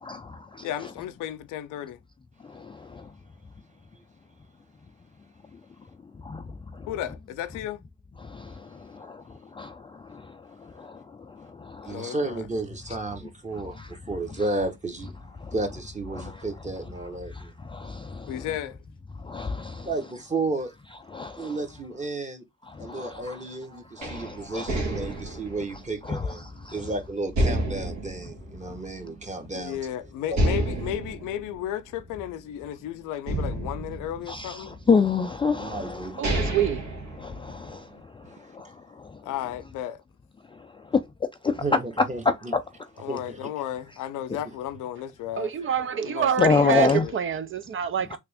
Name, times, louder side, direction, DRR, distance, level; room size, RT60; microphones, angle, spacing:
voice 1, 0.0-0.7 2.5-3.1 6.2-6.9 8.2-9.2 9.5-12.1 13.8-13.9 15.4-15.5 16.2-16.4 17.3-18.4 19.2-19.9 21.1-21.6 22.7-23.4 24.0-24.7 26.0-26.3 26.6-26.8 34.3-36.6 37.2-37.9 38.1-39.2 40.6-41.0 41.4-41.6 42.5-42.6 46.4-47.0 48.1-48.2, left 5 dB, 20° left, 0.3 m, -29 dB
voice 2, 0.6-2.0 6.9-7.8 11.8-12.4 18.3-18.8 29.5-34.8 39.2-40.0 43.0-45.5 46.1-47.1, left 11 dB, 90° left, 0.5 m, -34 dB
voice 3, 11.8-15.1 15.5-17.6 19.8-20.7 21.4-22.4 22.8-26.4 26.7-29.8 30.3-30.4 35.6-36.2 38.3-38.4 41.6-42.6 43.1-43.5, right 2 dB, 25° right, 1.1 m, -33 dB
sound 1, 24.0-26.8 27.3-29.3 29.6-29.7 30.3-32.7 33.3-34.8 35.6-35.7 36.0-37.8, right 1 dB, 70° right, 1.4 m, -30 dB
voice 4, 36.2-36.8 45.4-48.2, right 8 dB, 45° right, 0.4 m, -26 dB
3.4 x 2.5 x 3.4 m
cardioid pair, 90°, 30 cm